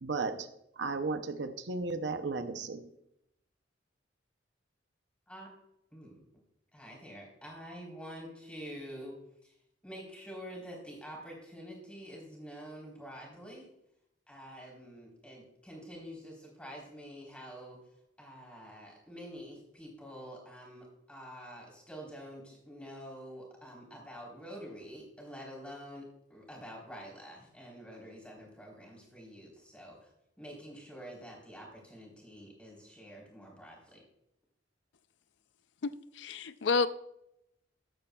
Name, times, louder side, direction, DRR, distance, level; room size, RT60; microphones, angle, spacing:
voice 1, 0.0-0.5 0.8-2.9, right 3 dB, 70° right, 0.7 m, -34 dB
voice 2, 5.9-6.2 6.7-9.5 9.8-13.7 14.3-17.8 18.2-30.1 30.4-34.0, equal, 5° left, 3.8 m, -47 dB
voice 3, 35.8-36.9, left 4 dB, 75° left, 0.4 m, -30 dB
14.0 x 11.5 x 2.3 m
head